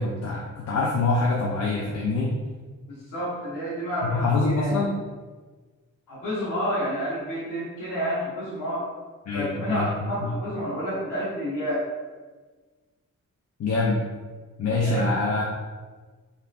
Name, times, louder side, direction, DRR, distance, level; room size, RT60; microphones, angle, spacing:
voice 1, 0.0-2.4 4.0-5.0 9.3-9.9 10.2-10.3 13.6-14.0 14.6-15.4, left 3 dB, 60° left, -3 dB, 0.5 m, -25 dB
voice 2, 2.9-4.8 6.1-8.9 9.3-11.9 14.8-15.2, equal, 85° left, -9 dB, 0.9 m, -29 dB
3.5 x 2.2 x 2.4 m, 1.4 s
cardioid pair, 80°, 32 cm